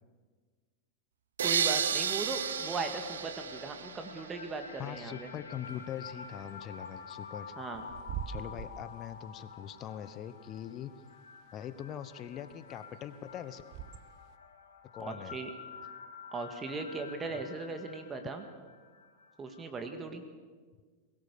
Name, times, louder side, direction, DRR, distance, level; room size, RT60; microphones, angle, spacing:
voice 1, 1.4-5.3 7.6-7.9 15.0-15.5 16.3-18.4 19.4-20.2, right 3 dB, 20° right, 7 dB, 2.0 m, -38 dB
sound 1, 1.4-4.4, right 8 dB, 65° right, 1.0 m, -32 dB
sound 2, 1.7-20.0, left 6 dB, 70° left, 1.6 m, -49 dB
voice 2, 4.8-7.5 8.3-10.9 11.5-13.6 14.9-15.3, left 10 dB, 35° left, 14 dB, 1.2 m, -42 dB
Bird / Wind, 5.7-14.4, right 10 dB, 45° right, 1.1 m, -47 dB
22.5 x 17.5 x 6.9 m, 1.5 s
figure-of-eight pair, 90°, 0 cm